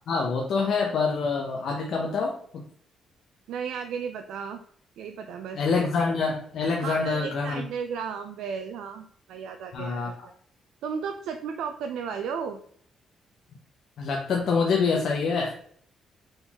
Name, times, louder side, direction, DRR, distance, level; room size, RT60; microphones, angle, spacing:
voice 1, 0.1-2.6 5.5-7.6 9.7-10.1 14.0-15.5, left 4 dB, 65° left, 0 dB, 0.7 m, -26 dB
voice 2, 3.5-4.6 5.0-5.6 6.8-10.3 10.8-12.6, right 6 dB, 80° right, 6 dB, 0.4 m, -34 dB
4.0 x 3.8 x 2.9 m, 0.63 s
cardioid pair, 90°, 0 cm